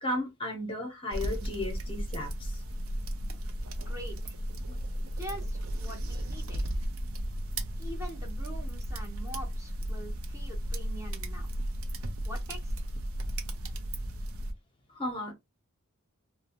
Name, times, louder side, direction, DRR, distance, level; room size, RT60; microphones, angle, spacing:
voice 1, 0.0-2.6 4.6-4.8 14.9-15.3, left 1 dB, 25° left, 0.7 m, -34 dB
sound 1, 1.1-14.5, right 1 dB, 70° right, 0.5 m, -34 dB
voice 2, 3.9-4.4 5.2-6.6 7.8-11.5 12.2-12.9, equal, 15° right, 0.7 m, -44 dB
2.6 x 2.0 x 2.8 m
head